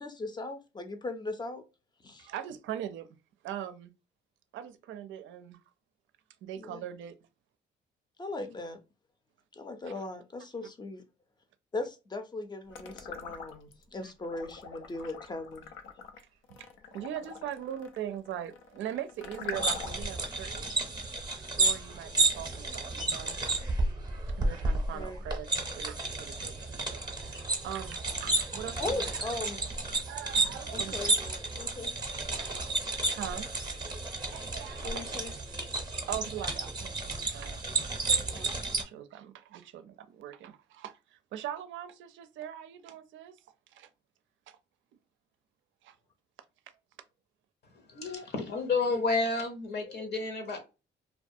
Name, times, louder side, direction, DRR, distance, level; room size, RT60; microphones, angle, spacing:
voice 1, 0.0-1.6 2.0-2.3 6.6-6.8 8.2-8.8 9.5-11.0 11.7-15.6 24.9-25.2 28.8-29.8 30.7-31.2 31.6-31.9 34.8-35.3 38.3-38.5, left 2 dB, 20° left, 0.5 m, -38 dB
voice 2, 2.2-3.1 3.4-3.9 4.5-5.6 6.4-7.2 9.8-9.9 14.0-14.1 16.5-16.7 16.9-20.7 21.4-23.4 24.4-29.3 29.9-31.3 32.1-32.7 33.1-33.5 34.3-35.7 36.1-37.6 38.1-38.5 38.7-43.4 43.7-43.9 44.5-44.6 45.8-46.0, right 10 dB, 75° right, 0.4 m, -41 dB
sound 1, 12.7-13.8 14.2-20.2, left 6 dB, 90° left, 0.5 m, -44 dB
sound 2, 19.5-38.8, right 3 dB, 20° right, 0.7 m, -32 dB
voice 3, 47.9-50.6, left 3 dB, 55° left, 0.7 m, -30 dB
2.3 x 2.2 x 2.6 m
cardioid pair, 90°, 20 cm